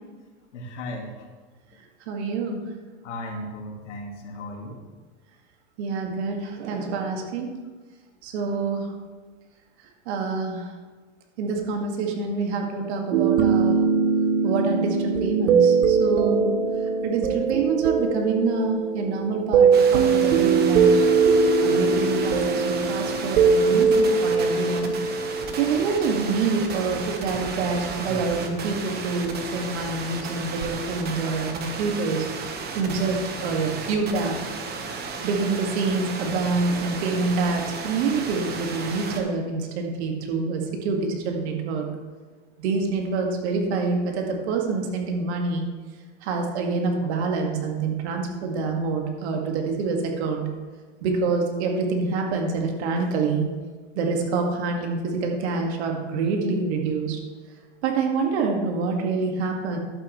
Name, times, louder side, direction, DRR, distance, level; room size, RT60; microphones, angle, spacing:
voice 1, 0.5-1.3 3.0-4.9, left 1 dB, 80° left, 2 dB, 2.0 m, -36 dB
voice 2, 2.1-2.6 5.8-7.5 8.2-8.9 10.1-10.7 11.4-13.8 14.4-16.5 17.0-21.1 21.6-24.9 25.6-32.3 32.7-34.4 35.2-41.9 42.6-45.7 46.2-50.4 51.0-53.4 54.0-57.2 57.8-59.8, right 4 dB, 65° right, 2 dB, 2.0 m, -26 dB
sound 1, 13.1-26.3 30.6-30.8, right 5 dB, 80° right, 0.9 m, -21 dB
sound 2, 19.7-39.2, right 4 dB, 25° right, 1.3 m, -34 dB
11.5 x 8.6 x 3.2 m, 1.4 s
hypercardioid pair, 125°, 35 cm